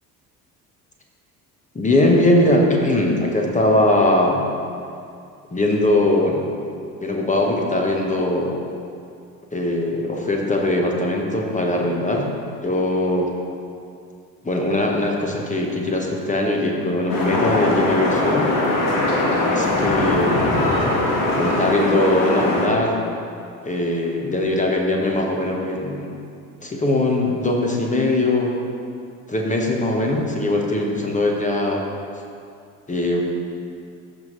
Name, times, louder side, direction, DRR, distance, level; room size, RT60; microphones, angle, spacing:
voice 1, 1.7-4.4 5.5-6.4 7.0-8.7 9.5-12.3 12.6-13.3 14.4-18.5 19.5-20.5 21.4-23.0 23.6-26.1 26.6-28.6 29.3-31.8 32.9-33.2, left 1 dB, 15° left, 0 dB, 1.5 m, -20 dB
sound 1, 17.1-22.7, left 2 dB, 50° left, 1.8 m, -21 dB
14.0 x 5.9 x 3.3 m, 2.4 s
figure-of-eight pair, 55°, 45 cm